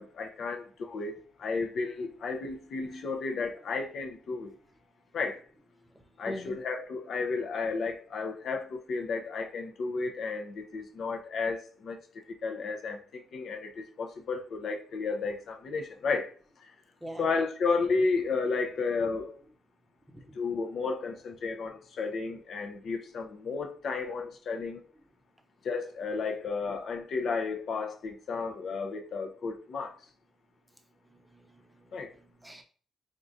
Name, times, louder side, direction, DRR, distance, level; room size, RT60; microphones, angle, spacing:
voice 1, 0.0-4.5 5.1-5.4 6.2-12.0 12.4-16.3 17.2-19.4 20.3-24.8 25.6-29.9 31.9-32.1, left 4 dB, 60° left, 0.7 m, -32 dB
voice 2, 6.2-6.6 17.0-17.3 31.1-32.6, equal, 10° right, 0.7 m, -44 dB
3.8 x 3.6 x 2.6 m
cardioid pair, 90°, 0 cm